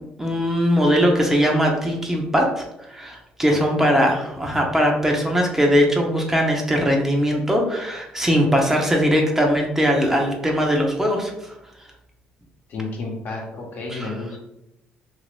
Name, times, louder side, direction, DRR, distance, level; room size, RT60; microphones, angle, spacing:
voice 1, 0.2-2.6 2.9-11.5 13.9-14.2, equal, 10° right, 1 dB, 0.7 m, -20 dB
voice 2, 12.7-14.4, left 3 dB, 65° left, -1 dB, 0.9 m, -31 dB
2.8 x 2.7 x 3.2 m, 0.85 s
supercardioid pair, 75°, 3 cm